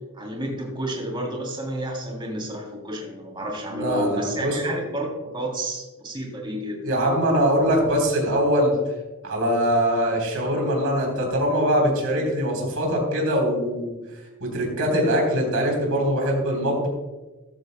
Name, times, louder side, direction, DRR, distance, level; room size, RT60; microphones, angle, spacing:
voice 1, 0.2-5.1 5.3-6.8, right 1 dB, 20° right, 0 dB, 2.9 m, -30 dB
voice 2, 3.7-4.6 6.8-8.8 9.2-14.0 14.4-16.9, equal, 80° right, 0 dB, 3.7 m, -22 dB
14.0 x 13.5 x 2.2 m, 1.2 s
head